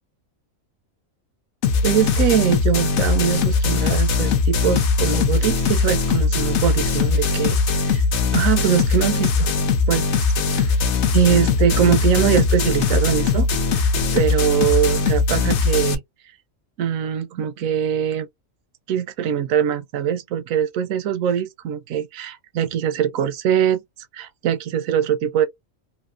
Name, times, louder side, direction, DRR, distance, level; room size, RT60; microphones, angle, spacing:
sound 1, 1.6-15.9, left 4 dB, 60° left, 0.9 m, -20 dB
voice 1, 1.8-7.5 7.9-8.0 8.3-9.5 9.9-10.7 11.1-13.5 13.7-16.0 16.8-18.3 18.9-23.8 24.1-25.5, right 9 dB, 75° right, 1.0 m, -22 dB
3.1 x 2.6 x 2.4 m
omnidirectional pair, 1.4 m